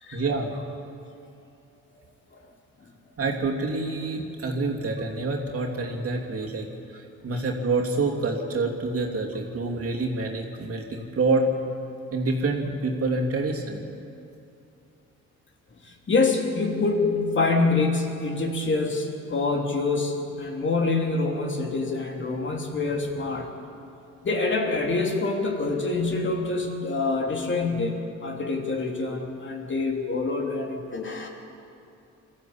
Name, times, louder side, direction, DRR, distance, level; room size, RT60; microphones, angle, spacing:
voice 1, 0.1-0.5 3.2-6.7 6.9-11.5 12.1-13.8, right 3 dB, 50° right, 0 dB, 3.0 m, -27 dB
voice 2, 15.8-23.5 24.2-31.3, left 3 dB, 40° left, 1 dB, 3.1 m, -26 dB
22.0 x 14.0 x 8.7 m, 2.7 s
cardioid pair, 90°, 30 cm